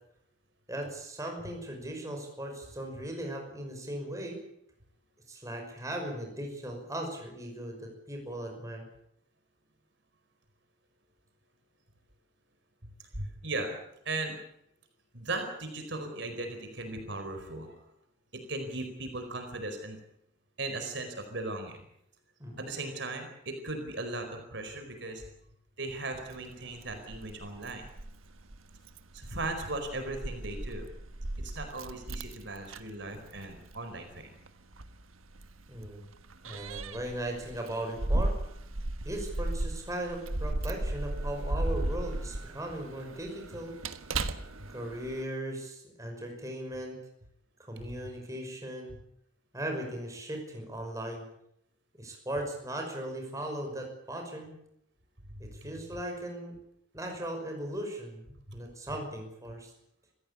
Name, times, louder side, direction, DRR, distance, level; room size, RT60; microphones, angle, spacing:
voice 1, 0.7-4.4 5.3-8.8 22.4-22.6 35.7-36.0 36.4-38.4 39.0-43.8 44.7-47.0 47.7-48.9 49.5-51.3 52.0-54.5 55.4-56.5 56.9-59.7, right 1 dB, 15° right, 2 dB, 5.9 m, -38 dB
voice 2, 13.1-13.8 14.0-14.4 15.1-17.8 18.3-20.0 20.6-21.8 22.6-25.2 25.8-27.8 29.1-30.9 31.4-34.4 47.8-47.9 55.3-55.4 58.5-58.6, right 2 dB, 60° right, 5 dB, 4.7 m, -37 dB
Keys jangling, 26.2-45.2, right 1 dB, 90° right, 1.5 m, -36 dB
27.0 x 16.0 x 8.6 m, 0.77 s
head